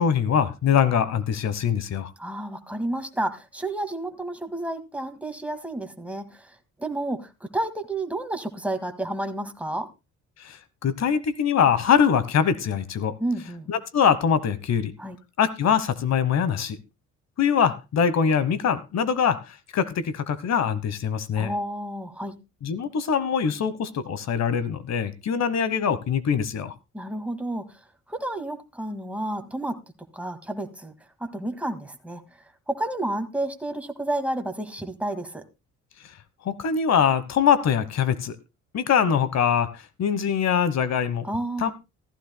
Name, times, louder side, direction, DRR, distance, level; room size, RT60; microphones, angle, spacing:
voice 1, 0.0-2.1 10.4-13.1 13.7-14.9 15.4-16.8 17.4-21.5 22.6-26.7 36.4-38.4 38.7-41.3 41.6-41.7, left 7 dB, 60° left, 1.2 m, -23 dB
voice 2, 2.2-9.9 13.2-13.7 15.0-15.2 21.3-22.4 26.9-27.6 28.1-29.8 30.1-30.9 31.2-32.2 32.7-35.4 41.2-41.7, right 1 dB, 5° right, 2.0 m, -30 dB
15.0 x 14.5 x 2.2 m
cardioid pair, 90°, 30 cm